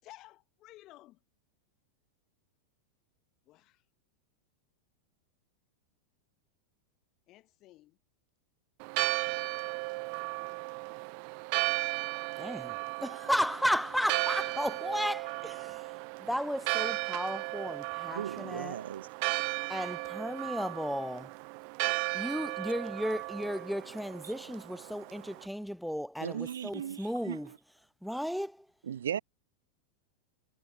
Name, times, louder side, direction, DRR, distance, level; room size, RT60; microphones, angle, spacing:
voice 1, 0.0-1.2 3.4-3.9 7.3-8.0, left 17 dB, 35° left, 5.5 m, -55 dB
Church bell, 8.8-25.5, right 40 dB or more, 45° right, 1.3 m, -35 dB
voice 2, 12.4-18.8 19.7-21.3 22.1-27.5 28.0-28.7, equal, ahead, 0.7 m, -34 dB
voice 3, 18.1-19.1 24.2-24.3 26.2-27.6 28.8-29.2, right 9 dB, 65° right, 0.7 m, -37 dB
figure-of-eight pair, 90°, 0 cm